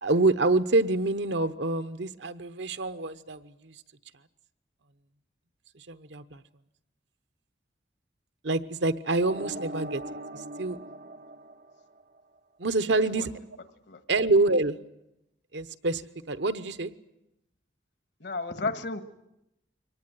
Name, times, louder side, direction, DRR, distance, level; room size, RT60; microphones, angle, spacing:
voice 1, 0.0-3.7 5.7-6.4 8.4-10.0 10.6-10.8 12.6-13.3 14.1-14.8 15.5-16.0 16.3-16.9, right 2 dB, 85° right, 12 dB, 1.0 m, -26 dB
sound 1, 9.2-12.2, right 1 dB, 55° right, 0.8 m, -40 dB
voice 2, 12.9-13.3 13.9-14.0 18.2-19.0, left 3 dB, 70° left, 10 dB, 1.6 m, -33 dB
24.0 x 19.0 x 9.4 m, 0.87 s
head